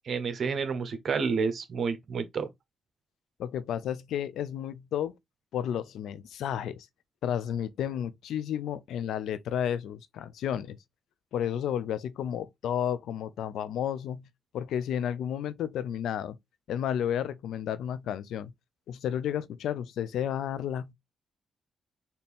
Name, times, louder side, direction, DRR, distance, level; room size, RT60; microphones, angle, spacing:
voice 1, 0.1-2.5, right 5 dB, 55° right, 1.0 m, -29 dB
voice 2, 3.4-5.1 5.5-6.9 7.2-10.8 11.3-14.3 14.5-16.4 16.7-18.5 18.9-20.9, left 9 dB, 80° left, 0.4 m, -32 dB
4.3 x 2.7 x 3.5 m
cardioid pair, 75°, 0 cm